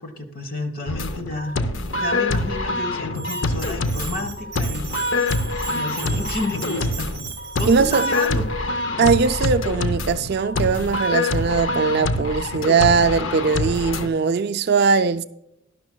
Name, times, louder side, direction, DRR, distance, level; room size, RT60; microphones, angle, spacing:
voice 1, 0.0-1.6 1.9-4.9 5.7-7.1 7.6-8.5, left 1 dB, 40° left, 1.2 m, -30 dB
sound 1, 0.9-14.1, left 2 dB, 60° left, 0.7 m, -25 dB
Bell, 3.1-8.3, right 7 dB, 15° right, 3.0 m, -36 dB
voice 2, 7.7-8.1 9.0-15.2, right 5 dB, 45° right, 0.3 m, -20 dB
12.0 x 11.5 x 2.2 m
head